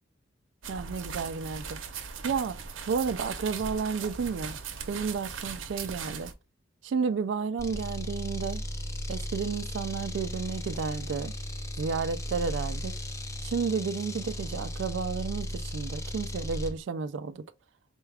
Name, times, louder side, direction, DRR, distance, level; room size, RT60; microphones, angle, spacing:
sound 1, 0.6-6.3, right 6 dB, 85° right, 0.7 m, -39 dB
voice 1, 0.7-1.8 2.2-2.6 2.9-4.6 4.9-6.3 6.8-8.6 9.1-11.3 11.8-12.9 13.4-17.4, right 5 dB, 65° right, 0.3 m, -32 dB
sound 2, 7.6-16.8, left 1 dB, 15° left, 0.5 m, -36 dB
4.4 x 2.3 x 3.2 m
head